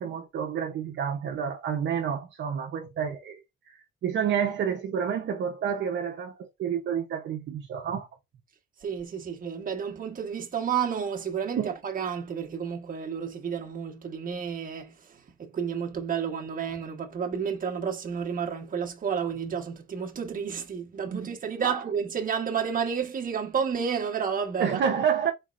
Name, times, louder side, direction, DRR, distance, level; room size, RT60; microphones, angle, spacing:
voice 1, 0.0-3.4 3.7-3.8 4.0-8.1 11.6-11.7 21.1-21.3 21.6-21.8 24.6-25.3, right 8 dB, 65° right, 0.9 m, -29 dB
voice 2, 8.8-25.0, right 7 dB, 45° right, 1.4 m, -31 dB
4.5 x 4.2 x 2.6 m
cardioid pair, 90°, 20 cm